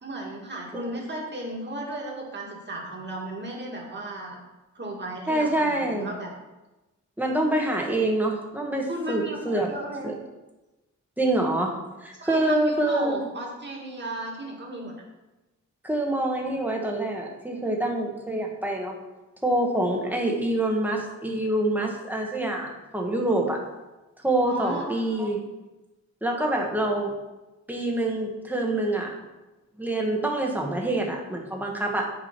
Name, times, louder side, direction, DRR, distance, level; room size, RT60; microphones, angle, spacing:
voice 1, 0.0-4.4 4.7-6.3 8.9-10.1 12.2-14.9 24.5-25.0, right 1 dB, 40° right, -2 dB, 2.0 m, -34 dB
voice 2, 5.3-6.1 7.2-9.7 10.0-10.1 11.2-11.7 12.0-13.3 15.8-19.0 19.4-23.6 24.2-25.4 26.2-27.1 27.7-29.2 29.8-32.1, right 1 dB, 5° right, 0 dB, 1.3 m, -26 dB
9.4 x 5.0 x 5.9 m, 1.1 s
wide cardioid pair, 165°, 30 cm